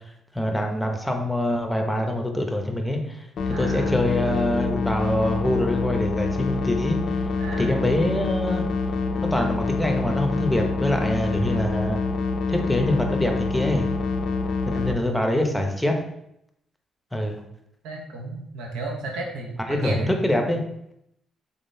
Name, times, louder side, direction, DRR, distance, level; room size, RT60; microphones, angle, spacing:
voice 1, 0.3-3.3 3.6-7.0 7.6-8.6 9.2-12.0 12.5-13.9 14.7-15.9 17.1-17.4 19.7-20.6, left 1 dB, 5° left, 3 dB, 0.7 m, -24 dB
sound 1, 3.4-14.9, left 3 dB, 60° left, 0.3 m, -26 dB
voice 2, 3.5-4.0 7.4-7.8 11.3-11.5 14.7-15.2 17.8-20.1, right 2 dB, 90° right, 0 dB, 0.7 m, -34 dB
3.6 x 3.6 x 2.6 m, 0.77 s
cardioid pair, 90°, 0 cm